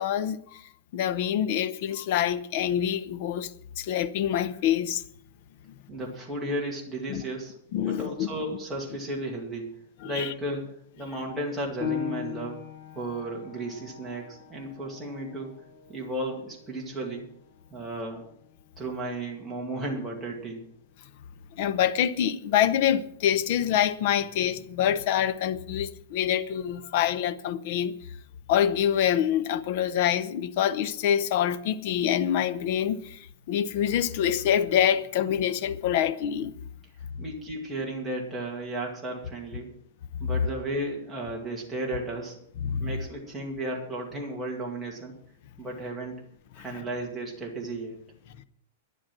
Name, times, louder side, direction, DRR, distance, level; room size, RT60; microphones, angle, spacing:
voice 1, 0.0-5.0 7.1-7.2 7.7-8.3 10.0-10.3 21.5-28.0 28.5-36.6 42.6-42.9 46.6-46.7, left 10 dB, 40° left, 0.7 m, -26 dB
voice 2, 5.9-9.7 10.0-10.7 11.0-12.6 12.9-15.5 15.9-17.3 17.7-18.2 18.8-20.6 37.2-39.7 40.2-42.4 42.8-45.1 45.6-46.2 46.6-48.0, right 1 dB, 5° right, 2.1 m, -34 dB
Piano, 11.8-17.0 17.5-17.6 18.2-18.7, left 9 dB, 15° left, 2.5 m, -39 dB
11.5 x 11.0 x 6.1 m
supercardioid pair, 180°, 0 cm